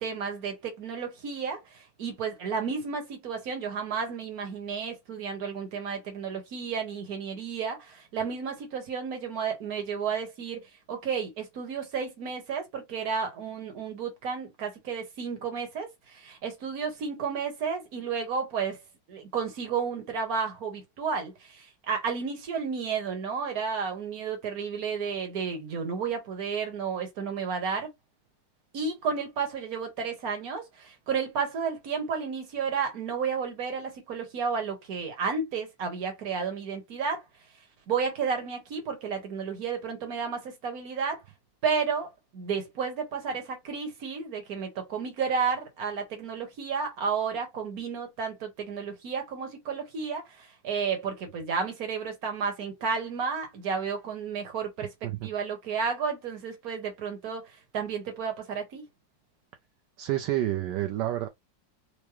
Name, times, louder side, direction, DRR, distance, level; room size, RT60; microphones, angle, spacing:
voice 1, 0.0-18.8 19.1-27.9 28.7-37.2 37.9-41.2 41.6-58.8, right 6 dB, 55° right, 1.6 m, -32 dB
voice 2, 60.0-61.3, right 14 dB, 75° right, 1.2 m, -29 dB
4.8 x 2.1 x 3.0 m
omnidirectional pair, 2.0 m